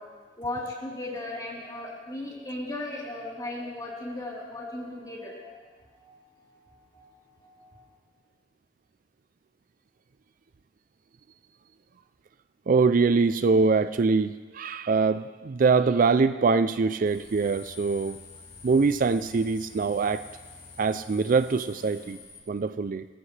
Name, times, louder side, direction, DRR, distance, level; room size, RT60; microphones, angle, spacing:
voice 1, 0.0-5.5 5.9-6.2 6.6-7.1 7.4-7.9, left 2 dB, 20° left, -4 dB, 3.7 m, -37 dB
voice 2, 12.7-18.2 18.6-20.3 20.8-22.2 22.5-23.1, right 4 dB, 45° right, 12 dB, 0.4 m, -23 dB
sound 1, 17.1-22.4, left 4 dB, 55° left, 3.4 m, -47 dB
25.5 x 15.0 x 3.3 m, 1.5 s
head